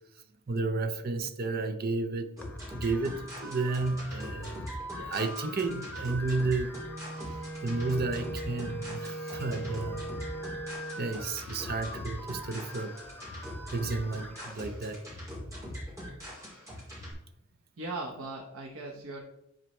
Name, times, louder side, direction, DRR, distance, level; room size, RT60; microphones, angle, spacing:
voice 1, 0.5-2.3 2.7-4.7 5.0-6.7 7.6-10.1 11.0-13.0 13.7-15.0, right 3 dB, 45° right, 8 dB, 0.6 m, -32 dB
sound 1, 2.4-14.5, left 1 dB, 10° left, 0.5 m, -45 dB
sound 2, 2.4-17.1, equal, 15° right, 2.6 m, -42 dB
Wind instrument woodwind instrument, 6.6-11.1, right 2 dB, 70° left, 1.2 m, -40 dB
voice 2, 17.8-19.2, right 2 dB, 80° right, 1 dB, 0.9 m, -38 dB
10.0 x 4.1 x 3.2 m, 0.85 s
head